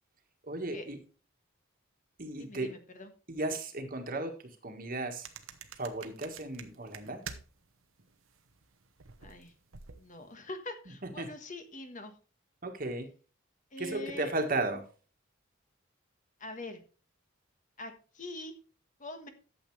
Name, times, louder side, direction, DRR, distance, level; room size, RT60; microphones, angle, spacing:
voice 1, 0.4-1.0 2.2-2.7 3.3-5.3 5.8-7.2 11.2-11.3 12.6-13.1 13.8-14.8, right 2 dB, 45° right, 6 dB, 1.6 m, -35 dB
voice 2, 2.4-3.1 9.2-9.5 10.0-12.1 13.7-14.3 16.4-16.8 17.8-18.5 19.0-19.3, left 2 dB, 40° left, 7 dB, 1.4 m, -43 dB
sound 1, 5.2-7.7 8.0-10.3, right 6 dB, 85° right, 1.1 m, -48 dB
12.0 x 7.7 x 3.3 m, 0.36 s
head